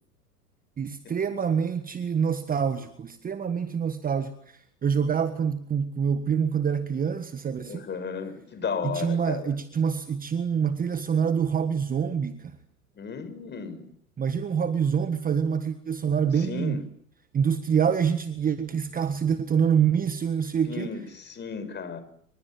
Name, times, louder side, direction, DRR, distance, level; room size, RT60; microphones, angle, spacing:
voice 1, 0.8-4.3 4.8-7.9 8.8-12.5 14.2-16.8 17.3-20.9, right 7 dB, 20° right, 10 dB, 1.6 m, -26 dB
voice 2, 7.7-9.5 13.0-13.9 16.3-16.8 20.7-22.0, left 5 dB, 20° left, 11 dB, 5.5 m, -34 dB
26.5 x 24.5 x 7.6 m, 0.66 s
figure-of-eight pair, 95°, 46 cm